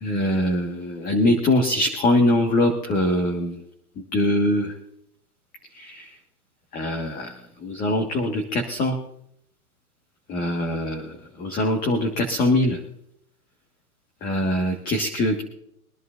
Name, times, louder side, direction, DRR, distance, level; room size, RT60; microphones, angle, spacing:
voice 1, 0.0-3.6 4.1-4.7 5.8-6.1 6.7-7.3 7.6-9.0 10.3-11.0 11.4-12.8 14.2-15.4, left 1 dB, 20° left, 2 dB, 1.7 m, -22 dB
24.0 x 11.0 x 2.6 m, 0.74 s
hypercardioid pair, 145°, 45 cm